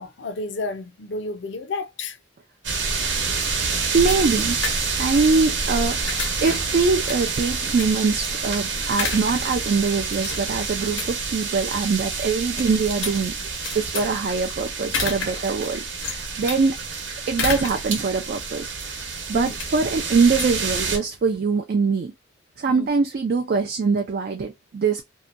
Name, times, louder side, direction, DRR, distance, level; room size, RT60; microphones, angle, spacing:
voice 1, 0.0-2.2 3.0-3.4 19.3-19.5 22.7-22.9, left 3 dB, 65° left, 0.5 m, -32 dB
sound 1, 2.6-21.0, right 4 dB, 70° right, 0.9 m, -28 dB
voice 2, 3.7-4.6 5.0-13.3 13.7-16.7 17.3-18.7 19.3-22.1 22.6-25.0, right 4 dB, 50° right, 0.3 m, -23 dB
sound 2, 3.9-21.3, left 4 dB, 90° left, 0.9 m, -34 dB
2.7 x 2.2 x 2.5 m
head